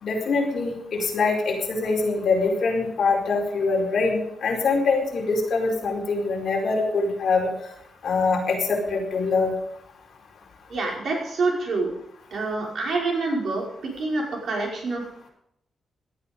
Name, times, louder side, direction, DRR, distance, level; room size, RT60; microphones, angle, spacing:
voice 1, 0.0-7.5 8.0-9.5, left 4 dB, 55° left, -1 dB, 4.6 m, -24 dB
voice 2, 10.7-11.9 12.3-13.6 14.0-15.0, right 3 dB, 55° right, -1 dB, 5.4 m, -26 dB
18.0 x 12.5 x 5.4 m, 0.74 s
wide cardioid pair, 170°, 0 cm